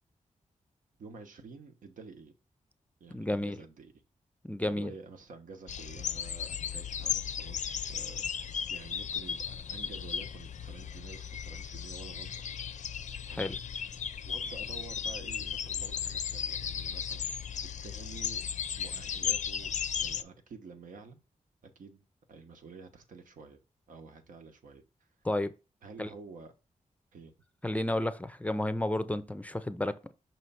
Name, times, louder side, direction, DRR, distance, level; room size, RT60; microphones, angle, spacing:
voice 1, 1.0-2.3 3.0-3.9 4.6-12.3 13.3-13.5 14.2-18.5 18.8-21.2 21.6-22.0 22.3-23.6 23.9-24.8 25.8-26.5 27.1-27.3, right 4 dB, 90° right, 1.0 m, -50 dB
voice 2, 3.1-3.6 4.4-4.9 13.3-13.6 25.2-25.5 26.0-26.1 27.6-30.1, left 1 dB, 10° left, 0.4 m, -32 dB
sound 1, 5.7-20.2, left 8 dB, 70° left, 0.5 m, -36 dB
5.7 x 3.1 x 5.5 m
wide cardioid pair, 110°, 13 cm